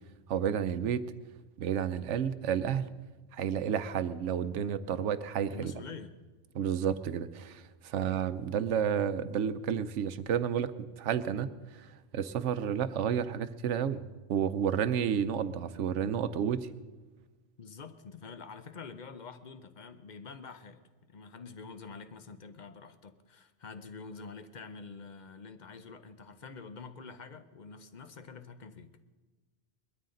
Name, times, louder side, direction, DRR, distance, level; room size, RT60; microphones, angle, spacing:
voice 1, 0.3-1.0 1.6-2.8 3.3-5.7 6.5-11.5 11.8-11.9 12.1-14.0 14.3-16.7, right 8 dB, 80° right, 13 dB, 1.0 m, -31 dB
voice 2, 5.5-6.1 17.6-28.9, left 5 dB, 45° left, 11 dB, 0.8 m, -47 dB
21.0 x 13.0 x 3.8 m, 1.3 s
omnidirectional pair, 1.2 m